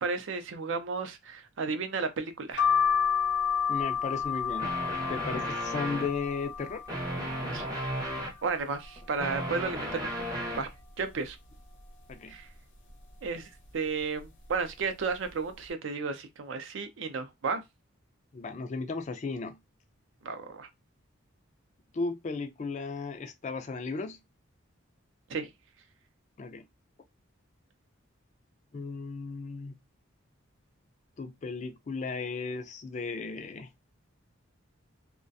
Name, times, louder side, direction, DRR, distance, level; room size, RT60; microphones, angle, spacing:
voice 1, 0.0-2.6 7.5-7.7 8.4-10.1 10.5-10.7 11.0-11.4 12.3-12.5 13.2-17.6 20.2-20.7 25.3-25.5, right 4 dB, 70° right, 0.5 m, -33 dB
sound 1, 2.6-8.3 8.7-9.5 9.9-10.0 10.1-11.3 11.7-12.1 12.9-13.2 14.0-14.2 14.5-14.7, left 7 dB, 60° left, 0.7 m, -31 dB
voice 2, 3.7-4.8 5.1-6.8 12.1-12.4 18.3-19.6 21.9-24.2 26.4-26.6 28.7-29.7 31.2-33.7, left 4 dB, 35° left, 0.3 m, -35 dB
sound 2, 4.6-6.2 6.9-8.4 9.0-10.7, equal, 20° right, 0.6 m, -34 dB
2.3 x 2.2 x 2.5 m
head